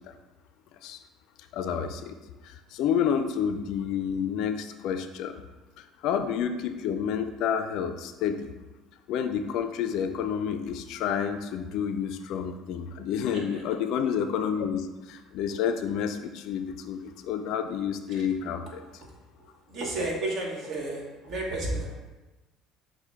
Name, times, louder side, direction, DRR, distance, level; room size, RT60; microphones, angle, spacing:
voice 1, 1.5-2.2 2.4-5.3 5.8-8.5 9.1-18.8, left 8 dB, 65° left, 8 dB, 0.3 m, -29 dB
voice 2, 19.7-22.0, right 2 dB, 55° right, -1 dB, 1.2 m, -32 dB
6.1 x 2.1 x 3.4 m, 1.1 s
hypercardioid pair, 65°, 0 cm